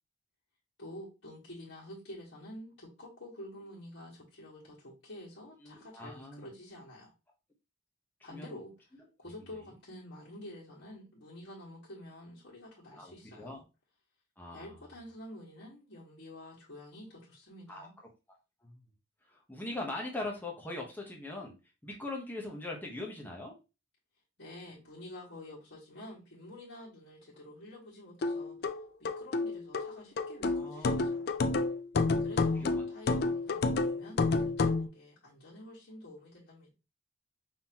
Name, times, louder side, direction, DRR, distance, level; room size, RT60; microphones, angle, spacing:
voice 1, 0.8-7.1 8.2-8.7 9.2-13.6 14.5-17.9 24.4-28.5 29.0-31.3 32.2-36.7, left 1 dB, 70° left, -8 dB, 1.6 m, -49 dB
voice 2, 5.6-6.5 8.2-8.6 12.9-13.6 14.4-14.8 17.7-17.9 18.6-18.8 19.3-21.5 21.8-23.5 30.5-31.1 31.5-31.7 32.6-32.9, left 2 dB, 10° left, -1 dB, 1.0 m, -41 dB
sound 1, 28.2-34.9, left 3 dB, 55° left, 0.4 m, -30 dB
5.6 x 2.9 x 2.9 m, 0.29 s
head